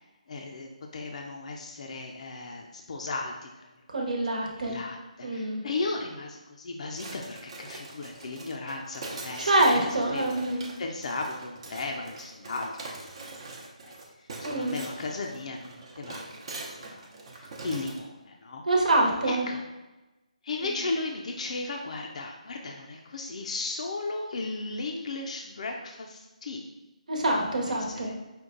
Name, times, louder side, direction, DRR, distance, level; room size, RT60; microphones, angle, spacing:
voice 1, 0.3-3.5 4.0-4.1 4.5-13.3 13.8-16.3 16.8-18.6 19.2-19.6 20.4-26.7 27.2-28.2, left 3 dB, 55° left, 1 dB, 0.5 m, -36 dB
voice 2, 3.9-4.8 5.2-5.6 9.4-10.7 14.4-14.8 18.7-19.5 27.1-28.1, right 1 dB, 70° right, -1 dB, 1.1 m, -25 dB
sound 1, 6.9-18.0, right 3 dB, 45° right, 0.7 m, -43 dB
5.2 x 2.3 x 3.8 m, 1.1 s
figure-of-eight pair, 160°, 4 cm